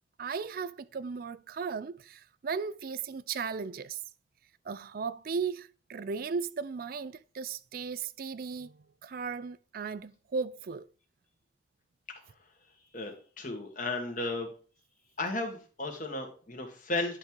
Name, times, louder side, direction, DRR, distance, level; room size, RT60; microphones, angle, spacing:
voice 1, 0.2-4.0 4.7-10.9, right 5 dB, 50° right, 0.4 m, -36 dB
voice 2, 12.9-14.5 15.2-17.2, left 2 dB, 45° left, 1.6 m, -34 dB
10.5 x 3.6 x 4.6 m
head